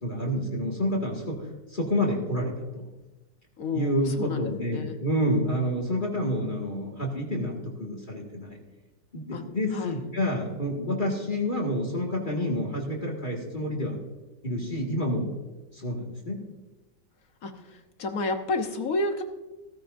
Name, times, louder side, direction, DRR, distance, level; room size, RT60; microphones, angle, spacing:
voice 1, 0.0-1.4 1.7-2.8 3.7-8.6 9.1-14.0 14.4-15.3 15.7-16.4, equal, 30° left, -1 dB, 2.0 m, -28 dB
voice 2, 3.6-5.0 9.3-9.4 9.7-10.0 17.4-19.2, left 3 dB, 60° left, 6 dB, 1.4 m, -31 dB
16.0 x 14.5 x 2.6 m, 1.1 s
omnidirectional pair, 1.8 m